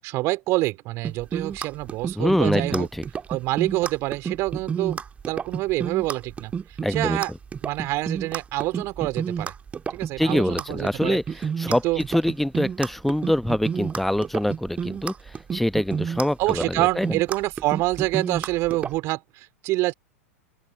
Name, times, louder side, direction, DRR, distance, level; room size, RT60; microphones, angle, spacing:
voice 1, 0.0-2.9 3.3-5.0 5.3-6.5 6.9-7.3 7.6-9.5 9.9-11.2 11.7-12.0 16.4-19.9, right 20 dB, 40° right, 4.1 m, -26 dB
sound 1, 1.0-18.9, right 6 dB, 20° right, 1.7 m, -30 dB
voice 2, 2.1-3.0 6.8-7.2 10.2-15.1 15.5-17.1, left 1 dB, ahead, 1.1 m, -24 dB
open air
figure-of-eight pair, 95°, 8 cm